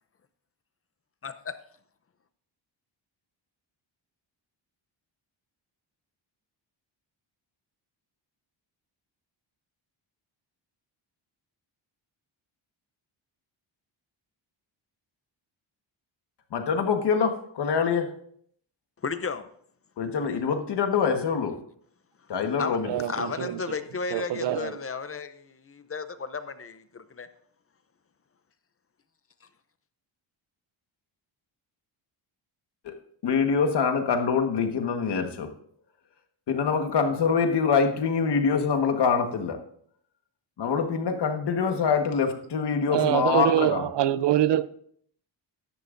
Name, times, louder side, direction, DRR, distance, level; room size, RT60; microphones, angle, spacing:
voice 1, 1.2-1.6 19.0-19.5 22.6-22.8 23.1-27.3 29.4-29.5, left 5 dB, 30° left, 0.5 m, -34 dB
voice 2, 16.5-18.1 20.0-21.5 22.3-22.9 32.8-32.9 33.2-35.5 36.5-39.6 40.6-43.9, left 6 dB, 55° left, 1.4 m, -25 dB
voice 3, 22.9-23.6 24.1-24.7 42.9-44.7, right 12 dB, 60° right, 0.5 m, -24 dB
13.5 x 11.0 x 2.6 m
wide cardioid pair, 155°, 48 cm